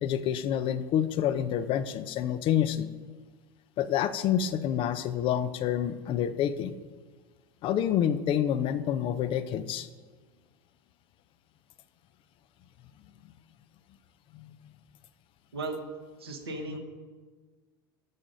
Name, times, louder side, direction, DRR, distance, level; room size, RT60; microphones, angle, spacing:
voice 1, 0.0-2.9 3.8-6.8 7.6-9.9 14.3-14.5, left 10 dB, 45° left, 13 dB, 0.7 m, -28 dB
voice 2, 16.2-16.8, right 2 dB, 90° right, -1 dB, 1.2 m, -35 dB
12.0 x 6.2 x 5.2 m, 1.4 s
hypercardioid pair, 80°, 13 cm